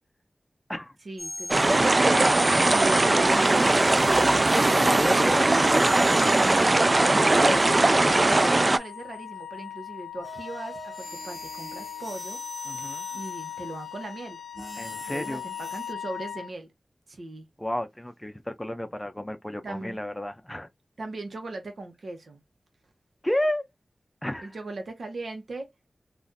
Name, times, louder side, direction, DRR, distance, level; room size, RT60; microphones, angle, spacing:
voice 1, 1.0-2.3 2.7-4.1 4.5-6.3 7.3-12.4 13.1-14.4 15.1-16.7 17.1-17.5 19.6-20.0 21.0-22.4 24.4-25.7, right 2 dB, 80° right, 1.0 m, -38 dB
sound 1, 1.2-9.5 10.2-15.9, equal, 5° right, 1.2 m, -41 dB
sound 2, 1.5-8.8, right 2 dB, 35° right, 0.3 m, -20 dB
voice 2, 4.7-6.0 7.1-7.8 12.7-13.1 14.7-15.4 17.6-20.7 23.2-23.7 24.2-24.6, left 1 dB, 10° left, 0.5 m, -31 dB
Wind instrument woodwind instrument, 7.1-16.5, left 10 dB, 65° left, 0.6 m, -40 dB
3.6 x 2.5 x 2.6 m
wide cardioid pair, 85°, 0 cm